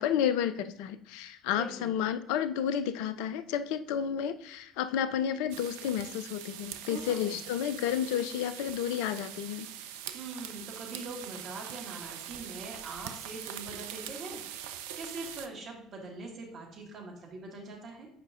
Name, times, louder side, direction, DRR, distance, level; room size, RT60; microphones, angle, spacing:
voice 1, 0.0-9.7, left 9 dB, 65° left, 13 dB, 0.4 m, -31 dB
voice 2, 1.5-1.9 6.8-7.4 10.1-18.1, right 3 dB, 45° right, -1 dB, 1.7 m, -43 dB
sound 1, 5.5-15.5, right 11 dB, 70° right, 0.4 m, -43 dB
8.4 x 5.1 x 2.4 m, 0.69 s
figure-of-eight pair, 55°, 0 cm